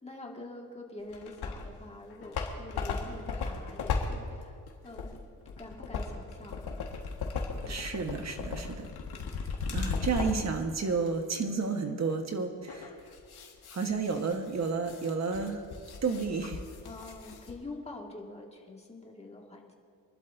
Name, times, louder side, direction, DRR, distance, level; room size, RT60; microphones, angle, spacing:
voice 1, 0.0-4.6 4.8-5.2 5.6-6.8 7.5-7.8 9.0-9.3 16.8-19.7, left 2 dB, 15° left, -1 dB, 2.1 m, -46 dB
sound 1, 1.1-1.7 2.1-10.5 11.1-11.2 12.7-17.5, left 4 dB, 80° left, 1.8 m, -36 dB
voice 2, 7.7-8.9 9.7-12.9 13.7-15.6 16.0-16.6, right 4 dB, 45° right, 5 dB, 1.4 m, -31 dB
25.5 x 12.0 x 2.7 m, 2.3 s
cardioid pair, 110°, 38 cm